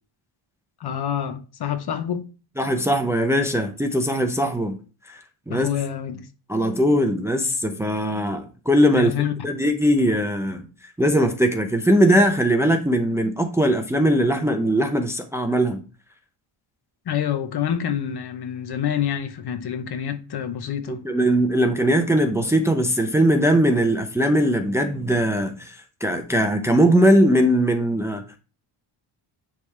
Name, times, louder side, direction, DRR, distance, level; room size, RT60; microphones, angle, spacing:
voice 1, 0.8-2.3 5.5-6.3 8.9-9.3 17.1-21.0, left 9 dB, 55° left, 0.9 m, -27 dB
voice 2, 2.6-4.8 5.1-5.2 5.5-5.7 6.5-10.7 11.0-15.8 20.9-28.4, equal, 5° right, 0.6 m, -20 dB
9.7 x 3.5 x 3.3 m
cardioid pair, 135°, 48 cm